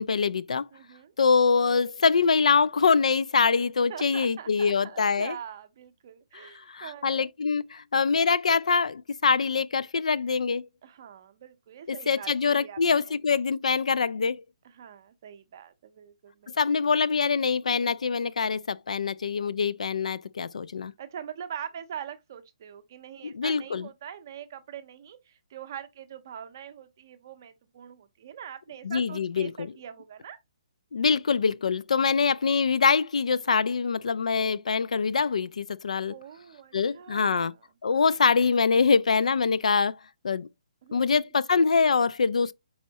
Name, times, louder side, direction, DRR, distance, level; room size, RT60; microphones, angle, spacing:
voice 1, 0.0-0.7 1.2-5.4 6.3-10.7 11.9-14.4 16.6-20.9 23.2-23.9 28.8-29.7 30.9-36.1 36.7-37.5 37.8-40.0 40.2-40.5 40.9-42.5, left 5 dB, 85° left, 0.4 m, -24 dB
voice 2, 0.7-1.1 3.9-7.3 10.8-13.1 14.6-16.6 21.0-30.4 36.1-37.6 40.8-41.2, right 9 dB, 30° right, 0.5 m, -43 dB
4.5 x 4.2 x 2.8 m
hypercardioid pair, 175°, 4 cm